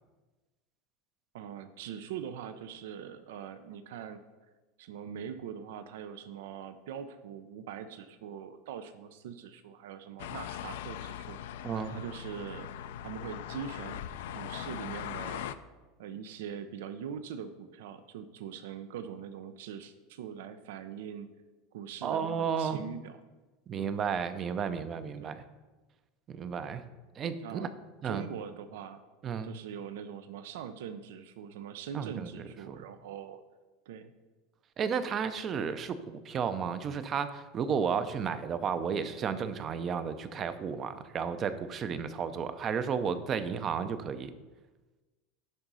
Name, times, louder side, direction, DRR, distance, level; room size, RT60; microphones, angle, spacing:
voice 1, 1.3-4.2 4.8-12.7 13.0-14.0 14.3-15.5 16.0-21.3 21.7-23.2 23.8-23.9 25.2-25.4 27.4-27.7 28.0-29.0 29.4-33.4 33.9-34.1, right 8 dB, 80° right, 10 dB, 0.5 m, -42 dB
sound 1, 10.2-15.5, left 11 dB, 85° left, 0.4 m, -40 dB
voice 2, 11.6-12.0 22.0-22.8 23.7-25.4 26.3-26.8 27.2-27.7 28.0-28.2 29.2-29.5 31.9-32.8 34.8-44.3, right 6 dB, 30° right, 11 dB, 0.5 m, -33 dB
10.5 x 3.9 x 5.5 m, 1.2 s
supercardioid pair, 155°, 0 cm